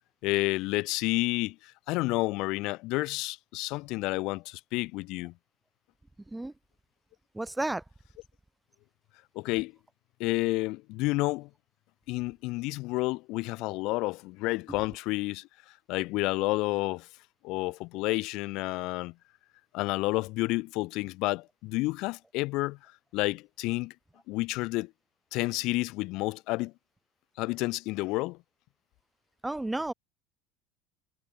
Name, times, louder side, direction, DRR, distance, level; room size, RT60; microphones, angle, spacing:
voice 1, 0.2-5.3 9.4-9.7 10.2-11.5 12.1-15.5 15.9-17.1 17.4-19.1 19.7-22.8 23.1-23.9 24.3-24.9 25.3-26.7 27.4-28.4, left 22 dB, 50° left, 5.4 m, -30 dB
voice 2, 7.3-7.8 29.4-29.9, right 2 dB, 10° right, 3.1 m, -31 dB
figure-of-eight pair, 70°, 0 cm